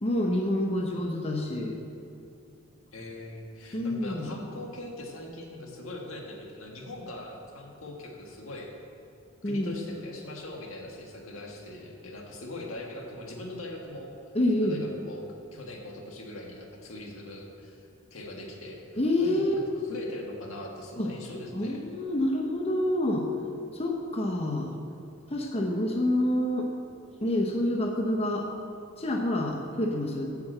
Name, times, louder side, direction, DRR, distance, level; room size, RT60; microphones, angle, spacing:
voice 1, 0.0-1.8 3.7-4.3 9.4-9.8 14.3-14.8 19.0-19.5 21.0-21.1 21.5-23.3 23.7-24.7 25.3-26.7 27.2-28.5 29.0-30.3, left 1 dB, 30° left, 1 dB, 0.8 m, -27 dB
voice 2, 2.9-8.7 9.4-14.1 14.6-15.2 15.5-18.8 19.2-21.8, left 1 dB, 85° left, 0 dB, 1.6 m, -41 dB
8.7 x 6.0 x 7.7 m, 2.7 s
head